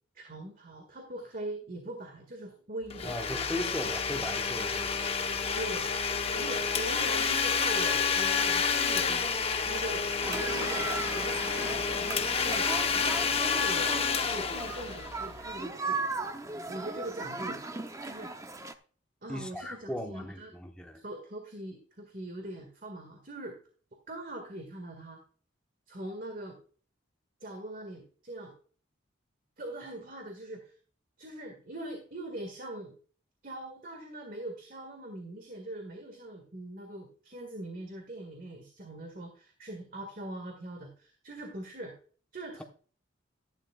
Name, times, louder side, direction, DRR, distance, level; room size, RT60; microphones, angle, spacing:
voice 1, 0.1-3.1 5.5-5.9 6.3-9.3 9.7-16.0 16.7-17.6 18.0-18.3 19.2-20.5 21.0-23.6 24.1-25.2 25.9-26.6 27.4-28.5 29.6-30.7 31.2-33.0 33.4-41.9 42.3-42.6, right 1 dB, 45° right, 1.8 m, -42 dB
Domestic sounds home sounds, 2.9-15.5, left 5 dB, 30° left, 0.8 m, -29 dB
voice 2, 3.0-5.0 19.3-21.0, left 1 dB, 5° left, 1.1 m, -37 dB
sound 1, 10.2-18.7, right 3 dB, 15° right, 0.7 m, -37 dB
12.5 x 11.0 x 2.3 m
head